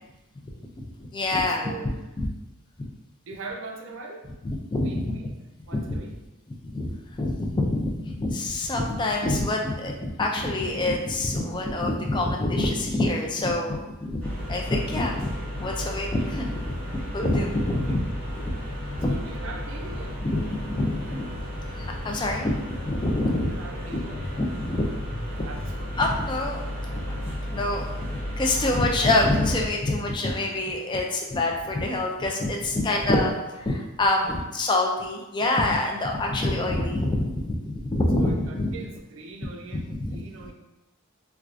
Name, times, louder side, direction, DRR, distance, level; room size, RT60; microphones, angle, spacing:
voice 1, 0.8-2.3 2.8-2.9 4.4-5.2 5.7-6.0 6.6-14.2 14.5-18.0 18.4-18.5 19.0-19.2 20.2-21.2 21.7-22.6 22.8-23.5 23.9-24.0 24.4-24.9 25.4-25.5 25.9-26.6 26.9-27.0 27.5-33.3 33.6-38.7 39.9-40.2, left 2 dB, 20° left, 1 dB, 0.3 m, -26 dB
voice 2, 1.6-2.0 3.2-4.3 4.8-5.3 5.7-6.1 17.7-18.1 19.1-20.2 23.4-24.2 25.3-26.0 32.8-33.3 34.2-34.4 38.2-40.5, right 3 dB, 60° right, 2 dB, 0.5 m, -41 dB
sound 1, 12.2-12.9 13.2-13.9 14.2-14.8 15.1-15.8 16.1-16.8 17.0-17.7 18.0-18.7 18.9-19.6 19.9-20.5 20.8-21.5 21.8-22.4 22.7-23.4 23.7-23.8 24.2-24.8 25.1-25.2 25.6-26.1, left 1 dB, 80° left, 0.5 m, -42 dB
sound 2, 14.2-29.7, equal, 5° left, 1.1 m, -34 dB
4.4 x 2.3 x 2.4 m, 1.0 s
head